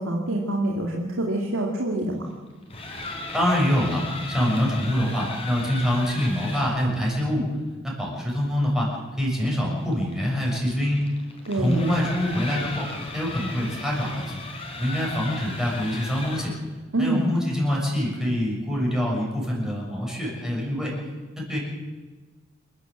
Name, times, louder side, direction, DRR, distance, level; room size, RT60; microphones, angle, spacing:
voice 1, 0.0-2.3 11.5-11.8 16.9-17.3, right 1 dB, 80° right, 0 dB, 2.5 m, -25 dB
sound 1, 2.5-6.8 9.4-16.6, left 2 dB, 30° left, 4.2 m, -36 dB
voice 2, 3.3-7.5 8.0-11.1 11.6-14.4 14.7-16.5 17.0-20.9 21.4-21.6, equal, 5° right, -4 dB, 6.7 m, -25 dB
28.0 x 12.5 x 7.9 m, 1.3 s
head